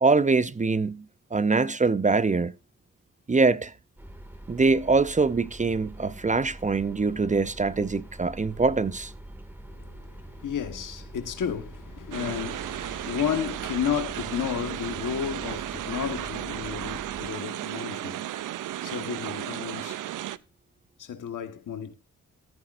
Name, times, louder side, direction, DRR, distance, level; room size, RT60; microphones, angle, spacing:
voice 1, 0.0-1.0 1.3-2.5 3.3-3.7 4.5-9.1, right 4 dB, 25° right, 0.5 m, -23 dB
sound 1, 4.0-17.3, right 1 dB, 5° right, 2.0 m, -44 dB
voice 2, 9.7-18.3 18.8-20.0 21.0-21.9, left 8 dB, 85° left, 1.4 m, -32 dB
sound 2, 12.1-20.4, right 13 dB, 90° right, 0.5 m, -34 dB
14.0 x 10.5 x 2.5 m
cardioid pair, 65°, 31 cm